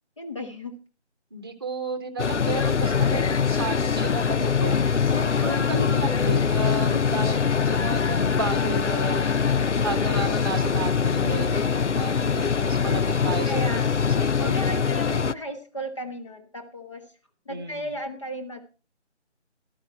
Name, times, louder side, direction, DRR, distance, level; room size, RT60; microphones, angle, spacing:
voice 1, 0.2-0.8 5.1-5.7 6.9-7.3 11.5-11.7 13.4-14.0 14.4-17.0 17.4-18.7, equal, 25° left, 4 dB, 1.4 m, -34 dB
voice 2, 1.3-4.8 5.4-9.3 9.8-14.5 17.5-17.9, right 3 dB, 20° right, 7 dB, 1.2 m, -33 dB
sound 1, 2.2-15.3, left 6 dB, 75° left, 0.7 m, -23 dB
14.0 x 12.5 x 4.4 m, 0.35 s
figure-of-eight pair, 160°, 35 cm